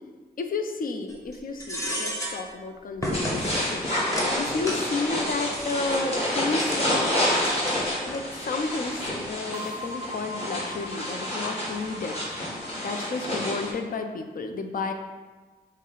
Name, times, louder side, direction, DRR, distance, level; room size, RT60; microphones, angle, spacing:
voice 1, 0.4-3.8 4.3-7.1 8.1-12.2 12.8-14.9, left 3 dB, 55° left, 6 dB, 0.5 m, -31 dB
sound 1, 1.1-1.3 1.6-2.4 3.0-3.7 4.1-4.8 5.3-6.0 6.5-6.9 7.4-8.2 8.5-8.6 9.0-9.2, equal, 20° left, 1.1 m, -32 dB
sound 2, 3.1-13.7, left 1 dB, 35° left, 1.5 m, -29 dB
sound 3, 6.0-8.3 9.5-13.8, left 1 dB, 25° right, 0.5 m, -42 dB
5.4 x 2.1 x 3.9 m, 1.3 s
cardioid pair, 55°, 17 cm